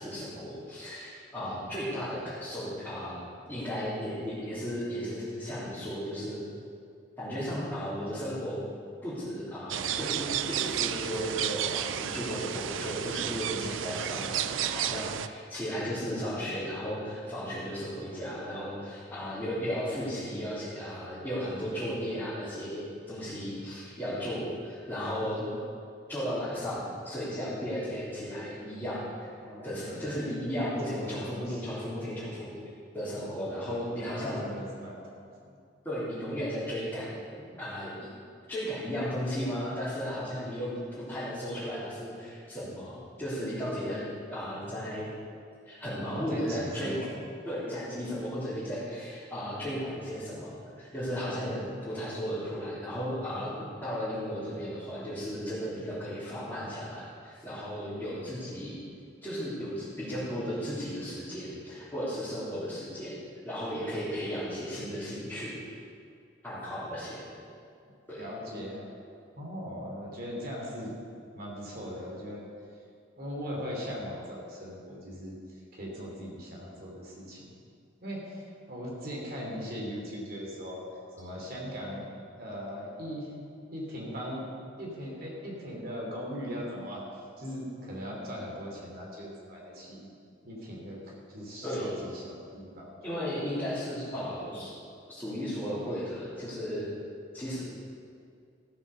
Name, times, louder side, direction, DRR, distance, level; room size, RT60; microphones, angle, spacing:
voice 1, 0.0-3.2 3.5-6.4 7.2-8.6 9.0-25.4 26.1-29.3 29.6-32.5 32.9-34.4 35.8-37.1 37.4-38.1 38.5-44.0 44.3-45.1 45.6-47.0 47.4-53.5 53.8-58.8 59.2-63.2 63.4-65.8 66.4-67.3 68.1-68.2 91.6-91.9 93.0-94.7 95.1-96.9 97.3-97.6, equal, 10° left, -13 dB, 3.4 m, -35 dB
sound 1, 9.7-15.3, right 9 dB, 75° right, 0.5 m, -32 dB
voice 2, 29.4-30.2 30.8-31.7 33.6-35.5 46.0-47.1 68.2-68.9 69.4-70.9 71.3-72.4 73.2-77.5 78.0-80.8 81.2-82.1 82.3-83.3 83.7-84.5 84.8-87.0 87.4-90.1 90.4-93.2 94.1-94.2, equal, 50° right, -3 dB, 3.1 m, -39 dB
15.0 x 7.0 x 6.9 m, 2.3 s
head